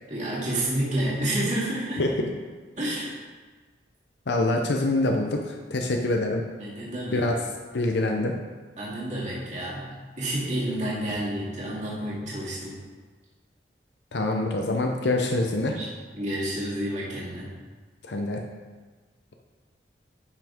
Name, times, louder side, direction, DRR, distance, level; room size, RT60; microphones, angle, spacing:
voice 1, 0.1-2.0 2.8-3.2 6.6-7.2 8.8-12.8 15.4-15.9 16.1-17.5, right 1 dB, 45° right, -7 dB, 2.3 m, -30 dB
voice 2, 4.3-6.4 7.1-7.3 7.7-8.3 14.1-15.8 18.0-18.4, left 2 dB, 75° left, 2 dB, 0.7 m, -25 dB
10.5 x 6.1 x 3.6 m, 1.4 s
head